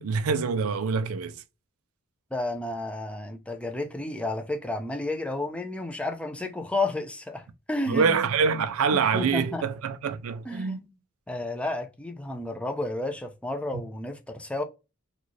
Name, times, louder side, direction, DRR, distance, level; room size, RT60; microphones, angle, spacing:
voice 1, 0.0-1.4 7.9-10.8, right 5 dB, 75° right, 0.4 m, -25 dB
voice 2, 2.3-8.3 8.9-9.6 10.4-10.8 11.3-14.6, left 2 dB, 5° left, 0.5 m, -31 dB
3.9 x 2.4 x 3.0 m
head